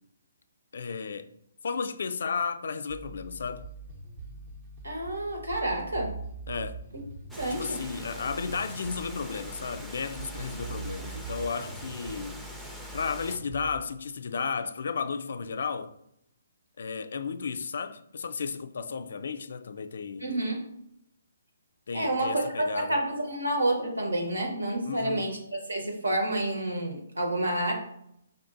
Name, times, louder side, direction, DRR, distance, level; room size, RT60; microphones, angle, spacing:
voice 1, 0.7-1.3 1.6-3.7 6.5-6.8 7.5-12.4 12.9-15.9 16.8-20.3 21.9-23.0 24.8-25.3, left 5 dB, 65° left, 0.3 m, -33 dB
sound 1, 2.9-13.8, right 3 dB, 35° right, 0.8 m, -43 dB
voice 2, 4.8-6.2 7.4-7.8 20.2-20.6 21.9-27.7, right 1 dB, 85° right, 1.2 m, -29 dB
Water, 7.3-13.4, right 1 dB, ahead, 0.5 m, -44 dB
5.2 x 2.6 x 2.5 m
figure-of-eight pair, 140°, 0 cm